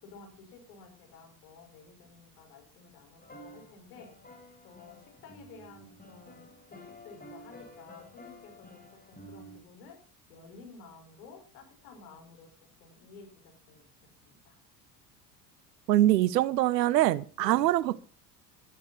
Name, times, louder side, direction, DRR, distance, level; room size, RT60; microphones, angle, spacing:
voice 1, 0.0-4.1 4.6-8.8 9.1-10.0 10.3-12.5 12.8-13.9 14.2-14.6 17.4-17.6, left 4 dB, 75° left, 5.8 m, -52 dB
sound 1, 3.2-9.6, equal, 20° left, 5.7 m, -51 dB
voice 2, 15.9-18.0, right 14 dB, 85° right, 0.9 m, -24 dB
12.5 x 12.0 x 5.7 m
hypercardioid pair, 70°, 49 cm